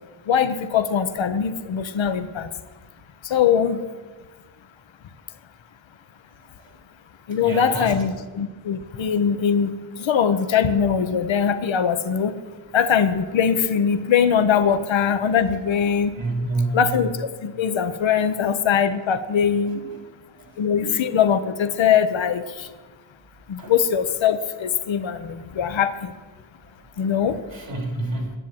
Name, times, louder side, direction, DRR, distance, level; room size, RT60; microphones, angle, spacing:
voice 1, 0.3-2.5 3.2-3.8 7.3-9.7 10.0-12.3 12.7-16.1 16.7-19.8 20.6-22.7 23.5-26.1 27.0-27.4, left 7 dB, 85° left, 10 dB, 0.8 m, -21 dB
voice 2, 7.3-7.9 14.7-14.8 16.2-16.9 19.7-19.8 20.3-20.7 23.6-23.7 27.5-28.4, right 2 dB, 70° right, 0 dB, 3.7 m, -29 dB
10.0 x 7.4 x 9.4 m, 1.3 s
cardioid pair, 45°, 44 cm